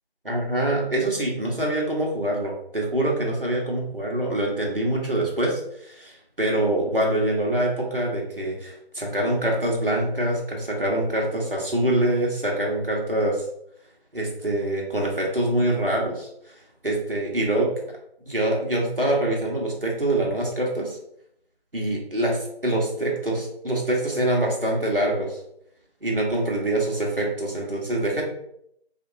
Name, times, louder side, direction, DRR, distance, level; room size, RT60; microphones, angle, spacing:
voice 1, 0.2-13.4 14.1-16.3 16.8-17.7 18.3-21.0 21.7-25.4 26.0-28.2, right 1 dB, 60° right, -2 dB, 1.1 m, -25 dB
3.6 x 2.8 x 2.6 m, 0.72 s
figure-of-eight pair, 180°, 32 cm